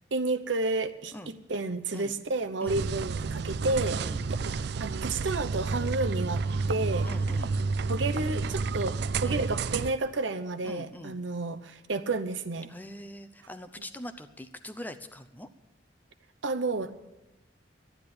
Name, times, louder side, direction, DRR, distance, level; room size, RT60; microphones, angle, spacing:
voice 1, 0.1-4.0 4.4-6.4 6.7-7.1 7.9-12.7 16.4-16.9, right 3 dB, 80° right, 9 dB, 0.9 m, -31 dB
sound 1, 2.7-9.9, right 4 dB, 60° right, 0.4 m, -30 dB
voice 2, 7.0-7.5 9.2-9.5 10.6-11.2 12.7-15.5, left 1 dB, 10° left, 10 dB, 0.6 m, -42 dB
12.5 x 10.0 x 8.7 m, 1.0 s
head